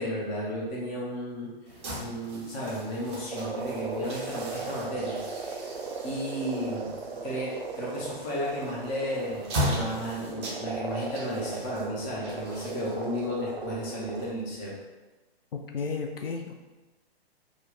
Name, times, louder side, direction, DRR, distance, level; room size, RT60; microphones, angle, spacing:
voice 1, 0.0-1.5 2.0-5.6 6.0-6.9 7.2-14.7, equal, 15° left, -4 dB, 0.6 m, -33 dB
sound 1, 1.7-14.7, equal, 25° right, 0.7 m, -38 dB
sound 2, 3.3-14.3, right 4 dB, 60° right, 0.5 m, -37 dB
voice 2, 15.5-16.5, left 5 dB, 65° left, 3 dB, 0.4 m, -33 dB
3.6 x 2.2 x 3.6 m, 1.1 s
figure-of-eight pair, 125°, 31 cm